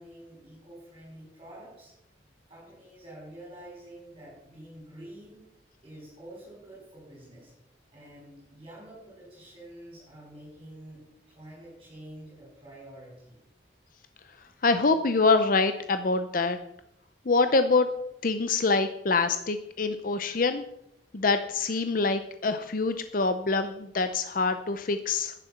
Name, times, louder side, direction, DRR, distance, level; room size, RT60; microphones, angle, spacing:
voice 1, 0.0-1.9 2.5-5.4 5.8-7.5 7.9-13.4, right 1 dB, 25° right, -5 dB, 5.0 m, -48 dB
voice 2, 14.6-16.6 17.3-17.9 18.2-20.6 21.1-25.3, left 3 dB, 50° left, 9 dB, 0.6 m, -25 dB
11.0 x 10.0 x 5.8 m, 0.80 s
head